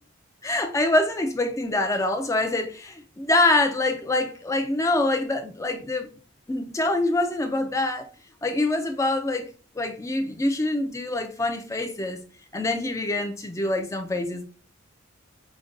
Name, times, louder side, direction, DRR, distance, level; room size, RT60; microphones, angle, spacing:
voice 1, 0.4-6.1 6.5-8.1 8.4-9.5 9.8-12.2 12.5-14.4, left 2 dB, 15° left, 0.4 m, -25 dB
5.1 x 2.2 x 2.5 m
head